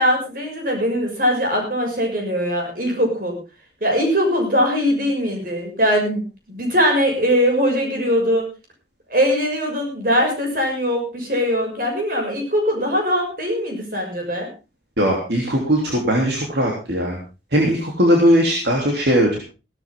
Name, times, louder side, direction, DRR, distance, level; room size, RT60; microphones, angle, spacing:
voice 1, 0.0-3.4 3.8-6.2 6.5-8.5 9.1-14.5, equal, 50° right, 2 dB, 6.4 m, -21 dB
voice 2, 15.0-17.2 17.5-19.4, equal, 65° right, 0 dB, 3.3 m, -19 dB
17.0 x 13.5 x 3.7 m, 0.30 s
head